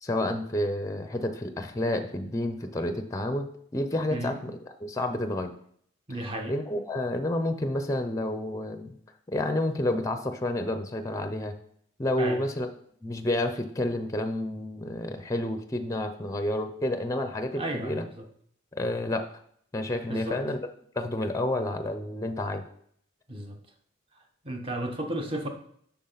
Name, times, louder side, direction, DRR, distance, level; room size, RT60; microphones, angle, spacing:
voice 1, 0.0-5.5 6.1-6.2 6.5-8.9 9.3-11.5 12.0-12.7 13.0-18.0 18.7-19.3 19.7-20.6 21.0-22.7, left 1 dB, 15° left, 8 dB, 0.6 m, -30 dB
voice 2, 6.1-6.5 12.2-12.4 17.5-18.2 20.1-20.4 23.3-23.6 24.4-25.5, right 1 dB, 25° right, 4 dB, 1.0 m, -33 dB
8.3 x 5.8 x 4.0 m, 0.64 s
head